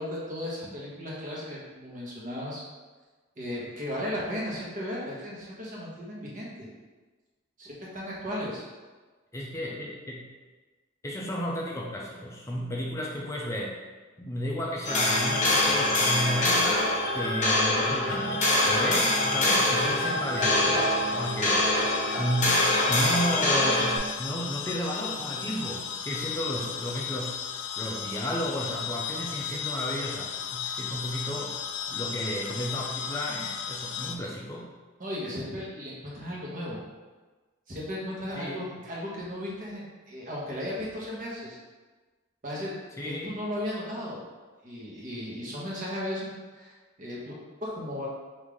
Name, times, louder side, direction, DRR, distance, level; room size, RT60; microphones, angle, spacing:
voice 1, 0.0-2.6 3.4-6.7 7.6-8.6 35.0-36.8 37.7-41.6 42.4-42.7 43.0-44.2 44.6-46.7 47.0-48.1, left 1 dB, 45° right, -5 dB, 1.1 m, -35 dB
voice 2, 9.3-10.3 11.0-13.8 14.2-20.8 21.1-21.6 22.2-22.6 22.9-31.6 31.9-34.7 38.4-38.8 43.0-43.4, equal, 15° left, -2 dB, 0.4 m, -33 dB
sound 1, 14.8-24.0, left 1 dB, 40° left, 0.8 m, -24 dB
sound 2, 17.9-34.2, left 7 dB, 85° left, 0.3 m, -36 dB
3.7 x 2.7 x 4.7 m, 1.3 s
head